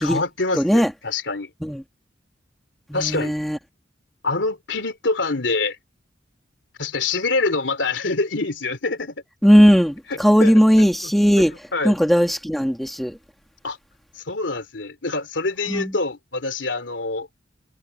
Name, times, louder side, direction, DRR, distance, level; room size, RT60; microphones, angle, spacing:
voice 1, 0.0-1.5 2.9-3.3 4.2-5.8 6.8-9.1 10.4-10.5 11.0-11.1 11.4-11.9 13.6-13.8 14.2-17.3, left 3 dB, 75° left, 3.1 m, -25 dB
voice 2, 0.6-0.9 1.6-1.8 2.9-3.6 9.4-11.5 11.8-13.2 15.7-15.9, equal, ahead, 2.3 m, -17 dB
head